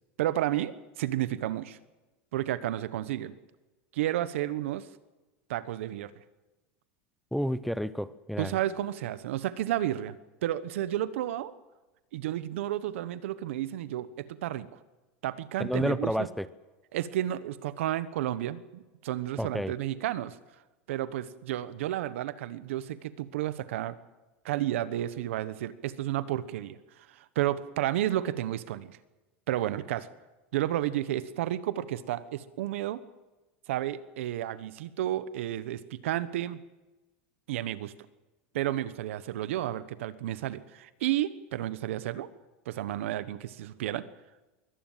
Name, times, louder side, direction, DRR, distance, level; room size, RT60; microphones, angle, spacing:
voice 1, 0.2-1.8 2.3-3.3 3.9-4.9 5.5-6.1 8.4-10.1 10.4-11.5 12.1-14.7 15.2-16.3 16.9-20.4 20.9-24.0 24.4-26.8 27.1-29.0 29.5-30.1 30.5-33.0 33.7-36.6 37.5-37.9 38.5-42.3 42.6-44.1, right 13 dB, 85° right, 1.2 m, -31 dB
voice 2, 7.3-8.6 15.6-16.5 19.4-19.7, equal, ahead, 0.7 m, -30 dB
23.0 x 17.5 x 7.4 m
supercardioid pair, 135°, 7 cm